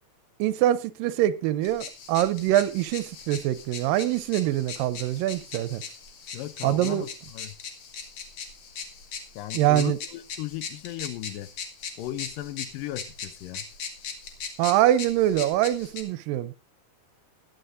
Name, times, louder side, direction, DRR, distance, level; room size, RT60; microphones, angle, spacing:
voice 1, 0.4-5.8 6.6-7.1 9.5-10.0 14.6-16.5, right 13 dB, 85° right, 2.4 m, -24 dB
sound 1, 1.6-16.0, left 6 dB, 55° left, 2.1 m, -40 dB
voice 2, 6.3-7.6 9.4-11.5 12.0-13.7, left 14 dB, 80° left, 2.4 m, -36 dB
21.5 x 9.6 x 2.6 m
omnidirectional pair, 3.9 m